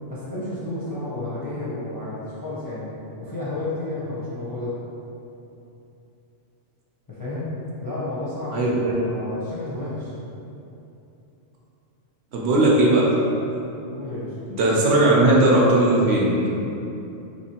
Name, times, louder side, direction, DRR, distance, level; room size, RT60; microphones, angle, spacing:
voice 1, 0.1-2.9 3.2-4.8 7.1-7.5 7.8-10.1 13.9-14.4, left 2 dB, 30° left, -10 dB, 0.4 m, -31 dB
voice 2, 8.5-8.9 12.3-13.1 14.6-16.5, right 1 dB, 70° right, -5 dB, 0.8 m, -18 dB
3.0 x 2.9 x 2.8 m, 2.9 s
omnidirectional pair, 1.2 m